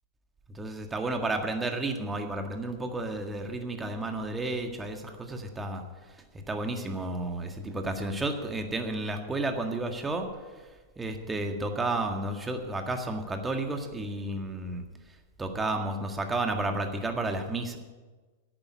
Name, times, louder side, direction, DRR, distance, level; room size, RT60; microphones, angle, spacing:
voice 1, 0.6-5.8 6.5-10.3 11.0-14.8 15.4-17.8, right 2 dB, 15° right, 5 dB, 1.8 m, -32 dB
11.0 x 8.8 x 8.3 m, 1.3 s
hypercardioid pair, 105°, 0 cm